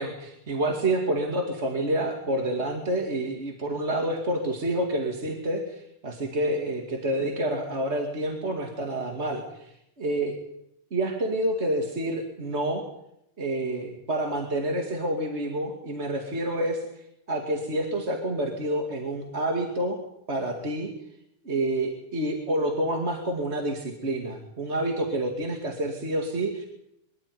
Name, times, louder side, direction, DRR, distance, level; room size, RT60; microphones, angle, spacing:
voice 1, 0.0-10.4 10.9-12.8 13.4-16.8 17.3-20.0 20.3-20.9 21.4-26.6, right 1 dB, 25° right, 2 dB, 2.0 m, -28 dB
24.0 x 13.0 x 9.8 m, 0.80 s
omnidirectional pair, 3.9 m